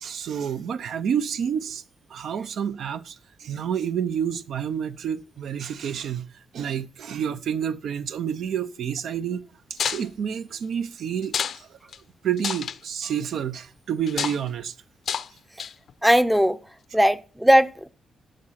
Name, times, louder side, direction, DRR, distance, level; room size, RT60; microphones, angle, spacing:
voice 1, 0.0-1.8 2.1-11.9 12.2-14.7, right 8 dB, 70° right, 0.5 m, -29 dB
sound 1, 9.8-10.1 11.2-11.6 11.9-12.0 12.4-12.8 14.1-14.4 15.1-15.3 15.6-15.9, left 8 dB, 60° left, 0.6 m, -28 dB
voice 2, 16.0-16.6 16.9-17.9, equal, 5° right, 0.5 m, -18 dB
12.5 x 6.3 x 5.7 m
cardioid pair, 120°, 0 cm